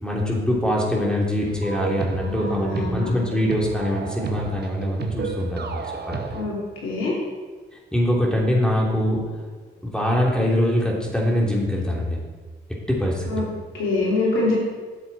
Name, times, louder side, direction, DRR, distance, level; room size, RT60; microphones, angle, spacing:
voice 1, 0.0-6.2 7.9-9.3 9.8-12.2 12.9-13.5, left 1 dB, 5° left, -3 dB, 2.9 m, -23 dB
sound 1, 1.5-6.4, right 5 dB, 55° right, 1.0 m, -32 dB
voice 2, 2.2-3.2 6.3-6.5 6.8-7.1 13.3-13.5 13.7-14.5, left 2 dB, 85° left, -4 dB, 2.8 m, -24 dB
9.5 x 7.1 x 4.2 m, 1.4 s
supercardioid pair, 45°, 21 cm